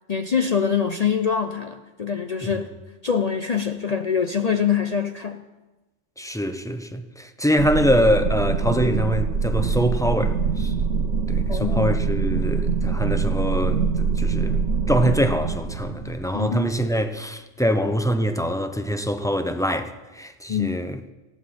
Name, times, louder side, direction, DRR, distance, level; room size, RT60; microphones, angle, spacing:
voice 1, 0.1-2.7 3.0-5.4 11.5-12.0 16.3-16.7 20.5-20.8, left 7 dB, 45° left, 0.6 m, -24 dB
voice 2, 6.2-10.7 11.3-14.6 14.9-21.1, equal, 5° left, 0.6 m, -24 dB
sound 1, 7.6-16.8, right 5 dB, 85° right, 1.2 m, -24 dB
19.0 x 15.5 x 4.3 m
omnidirectional pair, 1.2 m